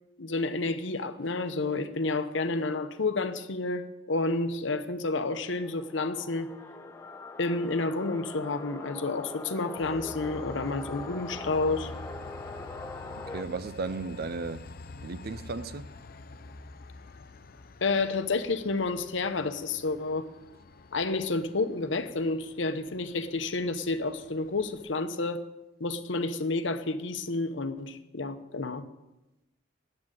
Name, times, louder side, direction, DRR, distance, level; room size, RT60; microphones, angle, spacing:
voice 1, 0.2-6.5 7.4-11.9 17.8-20.3 20.9-25.4 25.8-28.8, left 3 dB, 70° left, 0.9 m, -30 dB
sound 1, 5.3-13.4, left 3 dB, 15° left, 0.9 m, -42 dB
Train, 9.8-24.9, left 3 dB, 50° left, 0.6 m, -47 dB
voice 2, 13.3-14.7 15.0-15.9, right 4 dB, 50° right, 0.5 m, -35 dB
9.9 x 7.7 x 9.1 m
head